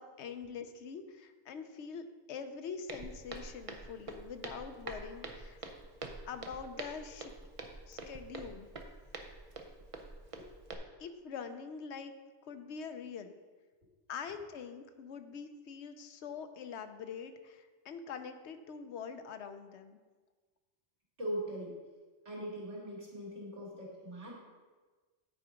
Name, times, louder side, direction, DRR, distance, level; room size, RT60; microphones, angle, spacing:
voice 1, 0.0-5.6 6.3-7.3 7.8-8.7 11.0-12.1 12.4-13.3 14.1-20.0, left 6 dB, 75° left, 9 dB, 0.9 m, -44 dB
Walk footsteps, 2.9-10.7, right 3 dB, 35° right, 0.6 m, -46 dB
voice 2, 21.2-21.7 22.2-24.3, equal, 80° right, -5 dB, 2.6 m, -40 dB
9.8 x 4.6 x 5.0 m, 1.4 s
omnidirectional pair, 1.2 m